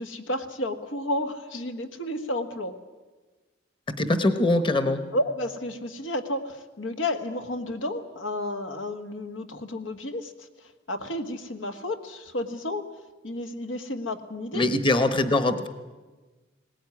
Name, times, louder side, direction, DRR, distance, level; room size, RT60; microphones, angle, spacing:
voice 1, 0.0-2.8 5.1-10.3 10.9-12.8 13.2-14.6, left 1 dB, 90° left, 7 dB, 1.6 m, -31 dB
voice 2, 3.9-5.0 14.5-15.7, left 2 dB, 25° left, 11 dB, 1.0 m, -23 dB
20.5 x 18.0 x 9.7 m, 1.3 s
head